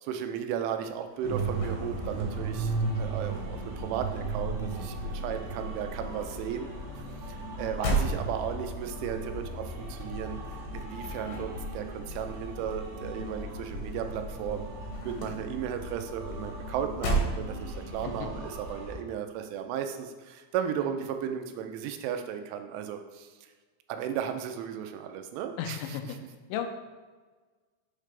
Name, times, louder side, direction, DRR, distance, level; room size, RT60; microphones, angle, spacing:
voice 1, 0.0-6.7 7.3-10.4 10.7-14.7 15.0-18.4 18.7-23.3 23.9-25.8, right 9 dB, 90° right, 6 dB, 3.1 m, -35 dB
sound 1, 1.1-2.9 3.1-5.1 5.4-14.0 14.3-18.0, right 2 dB, 75° left, 2.4 m, -36 dB
sound 2, 1.2-19.0, right 2 dB, 60° right, 2.8 m, -36 dB
voice 2, 6.9-7.2 18.0-18.3 20.8-21.1 25.6-26.0 26.5-26.7, left 8 dB, 90° left, 6 dB, 3.1 m, -36 dB
7.4 x 3.2 x 5.1 m, 1.4 s
omnidirectional pair, 5.4 m